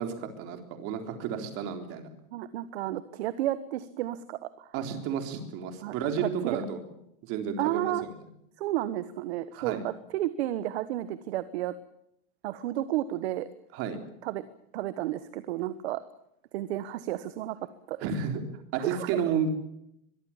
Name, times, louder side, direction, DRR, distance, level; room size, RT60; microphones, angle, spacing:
voice 1, 0.0-2.1 4.7-6.8 7.2-7.9 9.5-9.8 13.7-14.0 18.0-18.4 18.7-19.5, right 7 dB, 30° right, 6 dB, 3.8 m, -31 dB
voice 2, 2.3-4.7 5.8-6.6 7.6-8.0 8.6-11.7 12.4-13.5 14.2-14.5 14.7-16.0 16.5-17.6 17.9-18.0 18.8-19.1, right 14 dB, 50° right, 14 dB, 1.3 m, -32 dB
23.5 x 23.0 x 7.3 m, 0.77 s
supercardioid pair, 165°, 42 cm